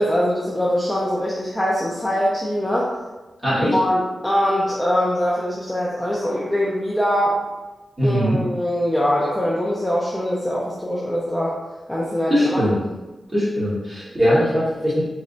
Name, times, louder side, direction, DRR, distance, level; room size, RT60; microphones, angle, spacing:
voice 1, 0.0-2.9 3.7-7.4 8.0-11.5 11.9-12.6, equal, 5° left, -6 dB, 0.4 m, -22 dB
voice 2, 3.4-3.8 8.0-8.4 12.3-12.8 13.3-15.0, equal, 15° right, -10 dB, 1.3 m, -20 dB
3.2 x 2.0 x 3.8 m, 1.1 s
wide cardioid pair, 175°, 0 cm